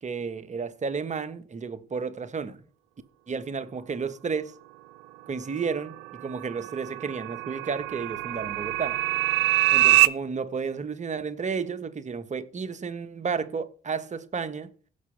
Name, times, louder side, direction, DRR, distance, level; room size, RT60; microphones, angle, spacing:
voice 1, 0.0-2.6 3.3-4.5 5.3-9.0 9.7-14.7, right 5 dB, 45° right, 1.4 m, -32 dB
sound 1, 5.8-10.1, right 19 dB, 80° right, 0.5 m, -24 dB
16.5 x 6.1 x 3.5 m
hypercardioid pair, 50°, 18 cm